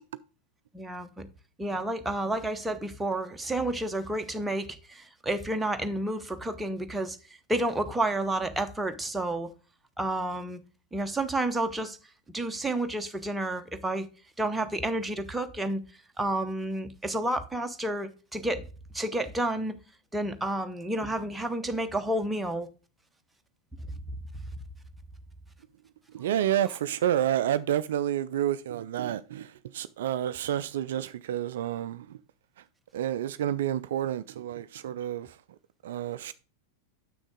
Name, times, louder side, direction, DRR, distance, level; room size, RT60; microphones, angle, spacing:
voice 1, 0.7-1.3 1.6-7.2 7.5-9.5 10.0-10.6 10.9-12.0 12.3-14.1 14.4-15.8 16.2-18.6 18.9-19.8 20.1-22.7, right 1 dB, 5° right, 0.8 m, -30 dB
voice 2, 26.1-32.2 32.9-35.4 35.8-36.3, right 11 dB, 55° right, 0.3 m, -29 dB
7.7 x 6.2 x 3.6 m
figure-of-eight pair, 90°, 0 cm